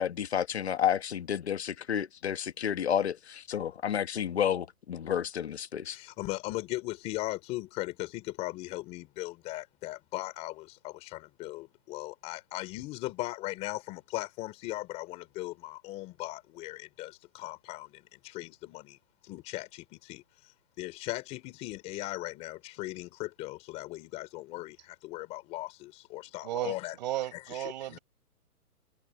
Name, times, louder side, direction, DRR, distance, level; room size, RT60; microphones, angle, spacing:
voice 1, 0.0-6.0, left 9 dB, 45° left, 1.7 m, -31 dB
voice 2, 5.9-19.0 19.2-27.0 27.3-27.6 27.9-28.0, left 18 dB, 15° left, 3.9 m, -38 dB
voice 3, 26.4-28.0, right 14 dB, 30° right, 5.0 m, -35 dB
hypercardioid pair, 170°, 46 cm